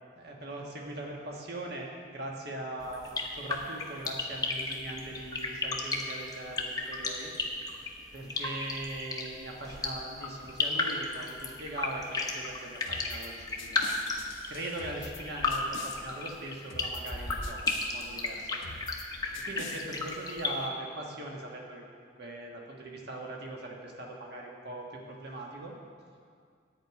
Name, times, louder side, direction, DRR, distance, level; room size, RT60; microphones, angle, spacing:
voice 1, 0.1-3.0 3.3-7.3 8.1-13.9 14.5-18.6 19.4-21.8 22.2-25.7, right 1 dB, 55° right, -1 dB, 1.5 m, -40 dB
sound 1, 2.8-20.5, left 3 dB, 20° left, 0.8 m, -34 dB
sound 2, 12.9-13.3 13.6-15.2 15.5-16.0 16.7-17.1 17.4-17.9 18.6-19.1 19.3-19.8, left 4 dB, 75° left, 0.8 m, -44 dB
10.5 x 5.0 x 8.1 m, 2.1 s
head